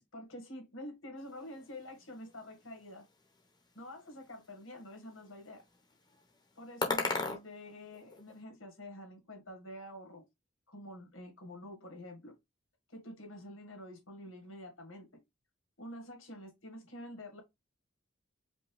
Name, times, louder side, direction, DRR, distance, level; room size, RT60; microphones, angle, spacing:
voice 1, 0.0-3.0 3.8-5.6 6.6-10.2 10.7-12.3 12.9-15.2 15.8-17.4, left 1 dB, 80° left, 1.9 m, -48 dB
sound 1, 1.2-8.4, left 3 dB, 20° left, 1.0 m, -41 dB
5.2 x 2.7 x 3.5 m
head